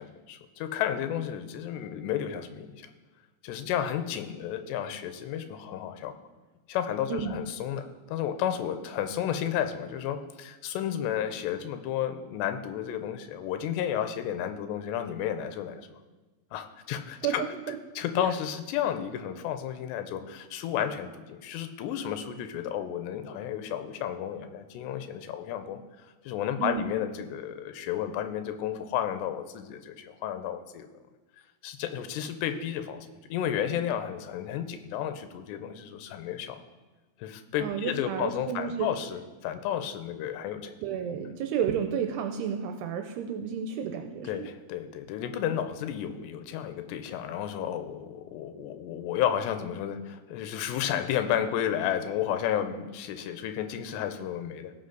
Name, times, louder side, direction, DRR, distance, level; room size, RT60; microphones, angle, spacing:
voice 1, 0.0-2.9 3.4-6.1 6.7-16.0 16.5-17.4 18.0-25.8 26.2-30.9 31.6-36.6 37.2-40.8 44.2-54.7, left 10 dB, 85° left, 8 dB, 2.9 m, -32 dB
voice 2, 37.6-38.9 40.8-44.5, right 8 dB, 85° right, 6 dB, 2.6 m, -31 dB
17.5 x 5.8 x 3.9 m, 1.3 s
omnidirectional pair, 5.0 m